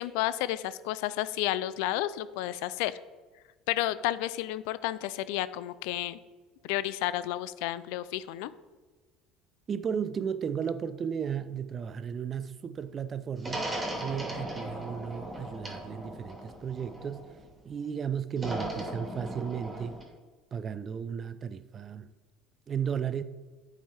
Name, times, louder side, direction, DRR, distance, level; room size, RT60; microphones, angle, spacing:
voice 1, 0.0-3.0 3.7-6.2 6.6-8.5, left 14 dB, 70° left, 0.3 m, -31 dB
voice 2, 9.7-17.4 17.6-20.0 20.5-22.1 22.7-23.2, right 7 dB, 40° right, 0.4 m, -34 dB
sound 1, 13.4-17.5 18.4-20.0, right 1 dB, 20° right, 2.4 m, -37 dB
8.7 x 4.8 x 4.3 m
hypercardioid pair, 70°, 0 cm